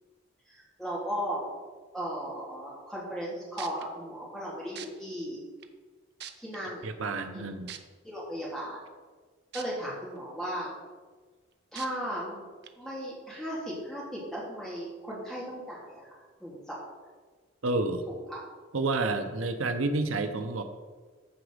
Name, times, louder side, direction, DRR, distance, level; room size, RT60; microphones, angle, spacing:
voice 1, 0.5-1.4 1.9-5.4 6.4-6.9 7.3-7.5 8.0-8.8 9.5-10.7 11.7-12.4 12.8-16.0 16.4-16.8 18.3-18.4, equal, ahead, -7 dB, 3.3 m, -36 dB
sound 1, 3.2-3.3 3.6-3.8 4.8-4.9 5.6-5.7 6.2-6.6 7.7-7.8 9.5-9.6 10.2-10.3 11.8-11.9 12.6-12.7, right 10 dB, 55° right, 0.7 m, -41 dB
voice 2, 6.8-7.7 17.6-18.0 18.7-20.6, right 2 dB, 90° right, 8 dB, 0.8 m, -29 dB
14.0 x 5.0 x 5.0 m, 1.4 s
head